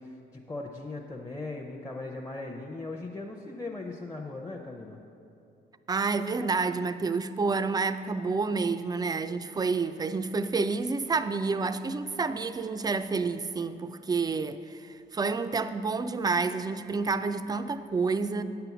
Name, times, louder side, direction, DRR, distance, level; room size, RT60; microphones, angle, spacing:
voice 1, 0.0-5.0, left 2 dB, 15° left, 0 dB, 0.7 m, -39 dB
voice 2, 5.9-18.4, right 4 dB, 20° right, 11 dB, 0.4 m, -29 dB
8.8 x 6.8 x 5.9 m, 2.6 s
cardioid pair, 90°, 20 cm